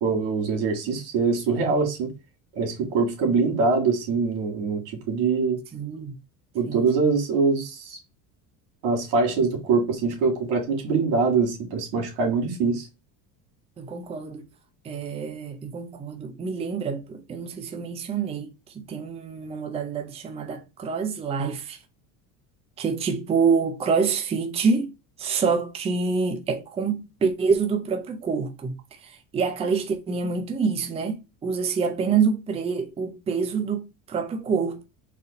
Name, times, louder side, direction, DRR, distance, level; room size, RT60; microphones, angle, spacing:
voice 1, 0.0-2.1 2.6-5.6 6.5-8.0 8.8-12.9, right 4 dB, 90° right, 2.0 m, -23 dB
voice 2, 5.7-6.2 6.7-6.9 13.8-14.5 14.8-18.5 18.7-21.8 22.8-24.9 25.2-34.8, right 5 dB, 15° right, 0.5 m, -26 dB
4.1 x 2.5 x 4.0 m
cardioid pair, 155°, 39 cm